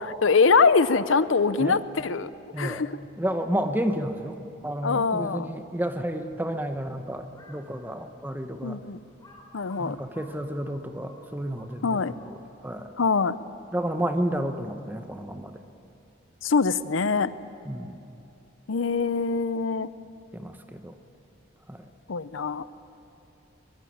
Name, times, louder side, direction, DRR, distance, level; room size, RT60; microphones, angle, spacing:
voice 1, 0.0-2.3 2.6-2.9 4.8-5.5 8.6-9.0 9.5-10.0 11.8-12.1 13.0-13.4 16.4-17.3 18.7-19.9 22.1-22.7, left 4 dB, 85° left, 15 dB, 0.7 m, -23 dB
voice 2, 2.5-2.9 3.2-8.8 9.8-12.4 12.6-12.9 13.7-15.6 17.6-18.0 20.3-21.0 21.7-21.9, right 1 dB, 10° right, 7 dB, 1.1 m, -31 dB
Crow, 7.3-7.7 8.3-8.4 9.2-12.6, left 2 dB, 20° left, 3.3 m, -53 dB
22.0 x 21.0 x 8.7 m, 2.7 s
head